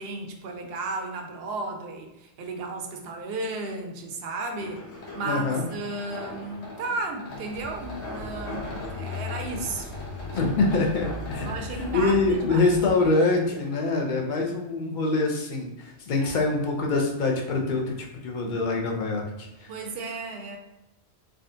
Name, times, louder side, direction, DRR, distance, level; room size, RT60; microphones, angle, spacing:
voice 1, 0.0-4.8 5.1-9.9 10.3-10.4 11.4-12.7 16.2-16.4 19.7-20.6, right 2 dB, 65° right, 3 dB, 0.7 m, -34 dB
sound 1, 4.6-14.0, left 2 dB, 70° left, 1.0 m, -40 dB
voice 2, 5.2-5.7 10.3-17.8 18.2-19.7, left 3 dB, 55° left, 0 dB, 0.6 m, -25 dB
sound 2, 7.3-13.0, left 2 dB, 10° left, 0.9 m, -38 dB
3.5 x 2.3 x 2.6 m, 0.94 s
omnidirectional pair, 1.2 m